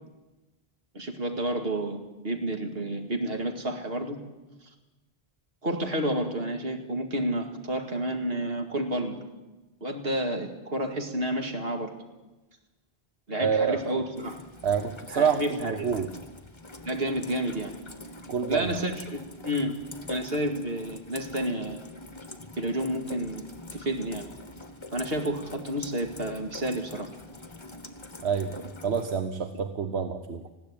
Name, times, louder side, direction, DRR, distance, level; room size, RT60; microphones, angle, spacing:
voice 1, 0.9-4.2 5.6-9.2 9.8-11.9 13.3-14.4 15.1-15.9 16.8-17.7 18.5-19.7 20.1-21.8 22.6-23.5 23.7-24.3 24.9-27.1, right 1 dB, 70° right, 4 dB, 2.4 m, -30 dB
voice 2, 13.4-13.8 14.6-16.1 18.3-18.8 28.2-30.5, right 6 dB, 85° right, 8 dB, 1.2 m, -27 dB
Rain, 14.2-29.1, left 2 dB, 25° left, 1.3 m, -44 dB
20.5 x 15.5 x 8.7 m, 1.1 s
omnidirectional pair, 1.1 m